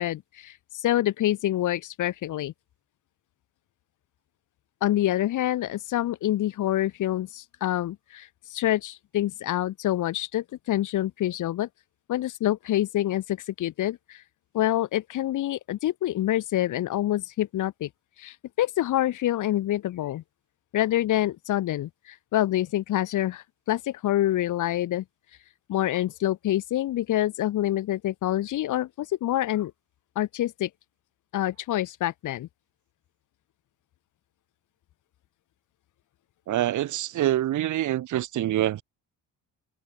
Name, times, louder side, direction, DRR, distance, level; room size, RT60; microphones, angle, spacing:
voice 1, 0.0-2.5 4.8-11.7 12.1-14.2 14.5-17.9 18.2-20.2 20.7-25.0 25.7-29.7 30.2-30.7 31.3-32.5, left 13 dB, 65° left, 2.5 m, -26 dB
voice 2, 36.5-38.8, right 13 dB, 60° right, 2.2 m, -25 dB
cardioid pair, 130°, 33 cm